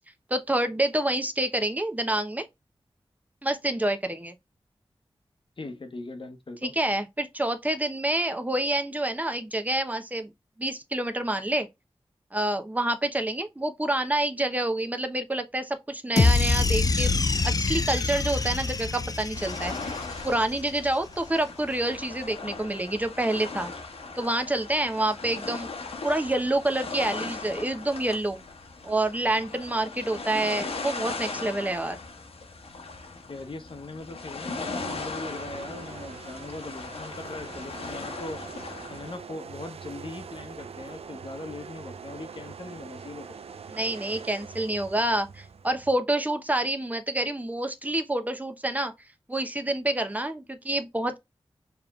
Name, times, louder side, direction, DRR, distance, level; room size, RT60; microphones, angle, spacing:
voice 1, 0.3-2.5 3.4-4.3 6.6-10.3 10.6-11.7 12.3-17.1 17.4-19.9 20.2-23.7 24.2-25.7 26.0-28.4 28.8-32.0 43.7-48.9 49.3-51.2, right 1 dB, 15° right, 0.8 m, -27 dB
voice 2, 5.6-6.7 33.3-38.4 38.9-43.4, left 2 dB, 55° left, 0.9 m, -40 dB
sound 1, 16.2-20.5, left 3 dB, 40° left, 0.4 m, -25 dB
sound 2, 19.3-39.2, left 3 dB, 80° left, 1.0 m, -38 dB
sound 3, 34.6-46.0, right 5 dB, 75° right, 0.4 m, -43 dB
4.6 x 3.5 x 2.4 m
cardioid pair, 45°, 10 cm